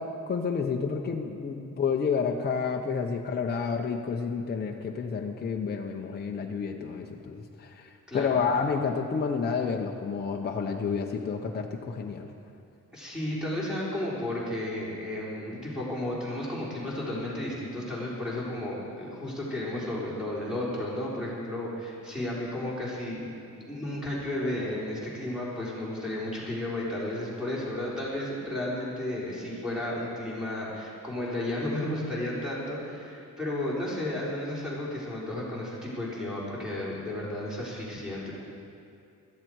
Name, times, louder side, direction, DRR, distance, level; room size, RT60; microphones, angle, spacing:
voice 1, 0.0-12.3, left 5 dB, 30° left, 1 dB, 0.7 m, -30 dB
voice 2, 12.9-23.2 23.6-38.3, left 1 dB, ahead, -7 dB, 3.7 m, -33 dB
16.5 x 13.0 x 4.6 m, 2.6 s
wide cardioid pair, 165°, 33 cm